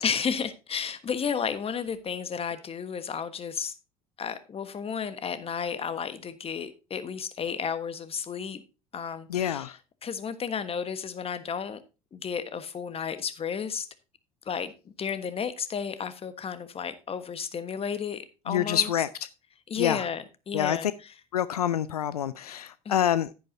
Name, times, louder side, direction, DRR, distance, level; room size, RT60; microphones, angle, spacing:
voice 1, 0.0-3.7 4.2-8.6 8.9-9.7 10.0-11.8 12.1-13.9 14.4-18.9 19.7-20.9 22.8-23.1, left 7 dB, 30° left, 1.3 m, -32 dB
voice 2, 9.3-9.8 18.5-19.1 19.8-20.1 20.5-20.9 21.3-23.3, left 10 dB, 85° left, 0.4 m, -26 dB
10.5 x 10.0 x 2.7 m
figure-of-eight pair, 65°, 19 cm